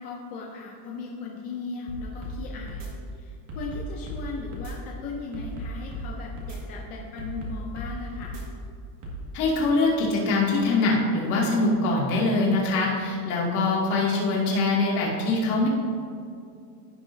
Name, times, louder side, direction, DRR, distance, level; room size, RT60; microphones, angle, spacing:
voice 1, 0.0-2.9 3.1-8.4, left 4 dB, 20° left, -2 dB, 0.4 m, -37 dB
sound 1, 1.9-2.4 2.7-2.9 3.5-4.2 4.5-4.7 5.3-6.1 6.4-6.6 7.2-7.9 8.2-8.4 9.0-9.2, equal, 35° right, 1.9 m, -35 dB
voice 2, 9.3-15.7, left 3 dB, 40° left, -5 dB, 2.4 m, -23 dB
15.5 x 6.6 x 2.7 m, 2.5 s
supercardioid pair, 170°, 48 cm